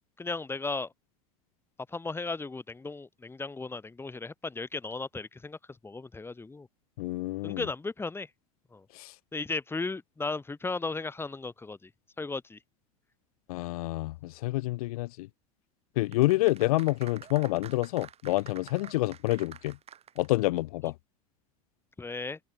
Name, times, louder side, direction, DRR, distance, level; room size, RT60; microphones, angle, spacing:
voice 1, 0.2-0.9 1.9-5.6 5.8-6.7 7.4-8.3 8.7-8.8 9.3-11.9 12.2-12.6 22.0-22.4, left 3 dB, 10° left, 2.6 m, -35 dB
voice 2, 7.0-7.7 8.9-9.1 13.5-15.3 16.0-19.8 20.2-20.9, left 19 dB, 75° left, 1.2 m, -28 dB
sound 1, 16.1-20.6 20.9-21.0, right 9 dB, 35° right, 4.0 m, -48 dB
open air
hypercardioid pair, 105°, 19 cm